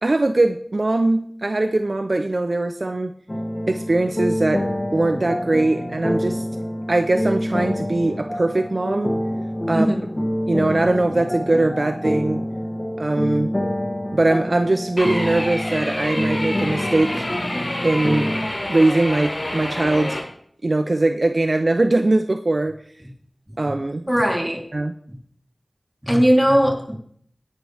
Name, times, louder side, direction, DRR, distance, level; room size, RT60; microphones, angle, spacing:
voice 1, 0.0-3.1 3.7-4.6 4.9-6.4 6.9-9.1 9.7-9.9 10.5-12.4 13.0-13.5 14.1-17.3 17.8-18.3 18.7-20.2 20.6-22.8 23.6-24.1 24.7-24.9, right 2 dB, 55° right, 7 dB, 0.6 m, -21 dB
sound 1, 3.3-18.5, equal, 25° left, 2.4 m, -27 dB
voice 2, 9.7-10.0 23.6-23.7 24.1-24.6 26.0-26.9, equal, 10° right, -1 dB, 3.4 m, -18 dB
sound 2, 15.0-20.2, left 1 dB, 45° left, 3.9 m, -28 dB
17.0 x 11.0 x 3.5 m, 0.64 s
wide cardioid pair, 60°, 0 cm